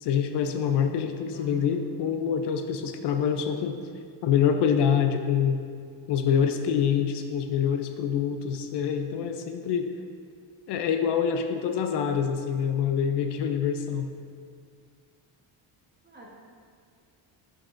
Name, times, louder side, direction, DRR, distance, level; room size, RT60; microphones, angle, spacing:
voice 1, 0.0-3.8 4.2-5.6 6.1-9.9 10.7-14.1, left 7 dB, 65° left, 7 dB, 0.5 m, -26 dB
voice 2, 1.3-1.7 16.0-16.3, right 3 dB, 20° right, -4 dB, 1.2 m, -46 dB
7.4 x 6.4 x 2.5 m, 2.2 s
cardioid pair, 135°, 45 cm